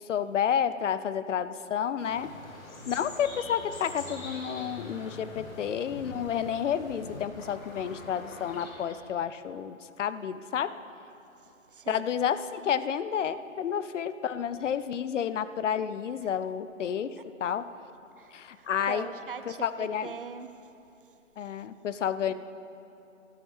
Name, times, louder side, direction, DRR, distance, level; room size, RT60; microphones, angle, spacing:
voice 1, 0.0-2.3 2.9-10.7 11.9-17.2 17.4-17.7 18.3-19.1 19.5-20.1 21.4-22.3, left 8 dB, 65° left, 14 dB, 0.6 m, -30 dB
sound 1, 2.0-9.0, left 2 dB, 85° left, 2.3 m, -44 dB
voice 2, 11.4-12.0 17.2-17.3 18.2-20.7 22.3-22.4, right 6 dB, 45° right, 10 dB, 0.5 m, -42 dB
13.0 x 12.5 x 3.4 m, 2.8 s
hypercardioid pair, 170°, 40 cm